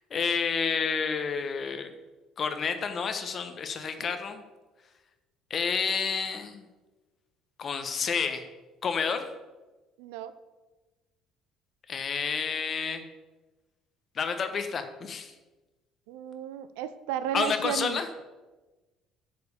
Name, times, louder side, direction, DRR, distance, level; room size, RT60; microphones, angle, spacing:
voice 1, 0.0-1.9 2.4-4.4 5.5-6.6 7.6-8.4 8.8-9.2 11.9-13.0 14.1-15.3 17.3-18.1, left 6 dB, 45° left, 7 dB, 1.2 m, -29 dB
voice 2, 10.0-10.4 16.1-18.0, right 10 dB, 75° right, 13 dB, 0.5 m, -33 dB
8.3 x 5.0 x 7.0 m, 1.2 s
hypercardioid pair, 55°, 0 cm